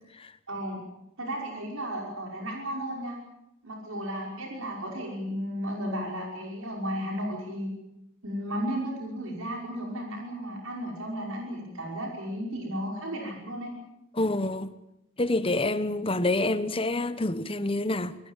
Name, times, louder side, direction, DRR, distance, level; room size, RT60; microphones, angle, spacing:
voice 1, 0.5-0.8 1.2-3.2 3.6-7.7 8.2-13.7, equal, 80° right, 5.7 m, -34 dB
voice 2, 14.1-14.7 15.2-18.2, left 2 dB, 25° left, 1.1 m, -27 dB
26.0 x 20.0 x 7.4 m
head